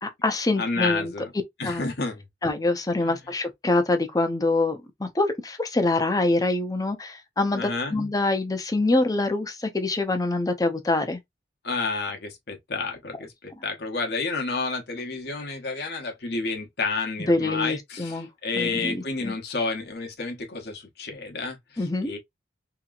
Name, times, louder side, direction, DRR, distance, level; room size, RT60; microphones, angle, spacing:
voice 1, 0.0-1.1 1.6-1.8 2.4-11.2 17.3-18.3 18.6-19.0 19.2-19.3 21.8-22.1, left 2 dB, 20° left, 0.6 m, -25 dB
voice 2, 0.6-1.3 1.6-2.2 3.0-3.2 7.5-8.0 11.6-22.2, left 3 dB, 60° left, 0.9 m, -30 dB
2.9 x 2.7 x 2.4 m
head